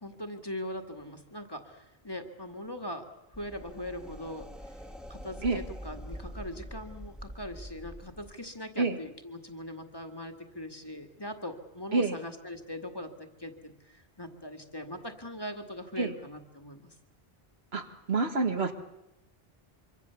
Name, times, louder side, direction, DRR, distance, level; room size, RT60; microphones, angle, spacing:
voice 1, 0.0-4.8 5.1-16.9, left 1 dB, 25° left, 6 dB, 2.0 m, -41 dB
sound 1, 3.3-8.3, equal, ahead, 1.6 m, -44 dB
voice 2, 17.7-18.7, right 3 dB, 80° right, 7 dB, 2.0 m, -28 dB
25.0 x 25.0 x 7.0 m, 0.92 s
omnidirectional pair, 1.0 m